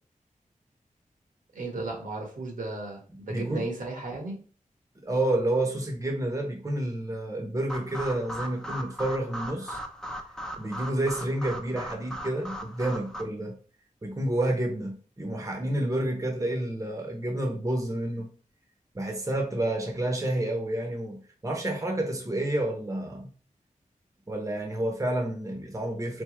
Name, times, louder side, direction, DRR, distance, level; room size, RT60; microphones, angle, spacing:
voice 1, 1.5-4.4, right 2 dB, 80° right, 1.5 m, -35 dB
voice 2, 3.3-3.6 5.0-9.8 10.6-13.6 14.0-18.3 18.9-23.3 24.3-26.2, right 1 dB, 25° right, 0.9 m, -29 dB
sound 1, 7.7-13.2, equal, 5° left, 0.6 m, -38 dB
4.1 x 3.5 x 3.1 m
wide cardioid pair, 80°, 14 cm